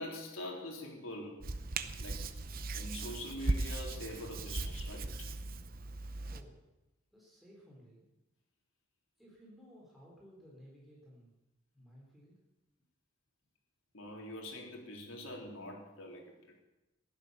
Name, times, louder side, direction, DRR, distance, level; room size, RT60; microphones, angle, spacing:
voice 1, 0.0-1.5 2.0-2.3 2.7-5.3 13.9-16.6, left 1 dB, 70° left, 0 dB, 3.7 m, -44 dB
Hands, 1.4-6.4, right 2 dB, 40° right, 0.8 m, -38 dB
voice 2, 6.3-6.6 7.1-8.1 9.2-11.3 11.7-12.3, equal, ahead, -5 dB, 3.9 m, -57 dB
15.5 x 11.5 x 6.9 m, 0.99 s
head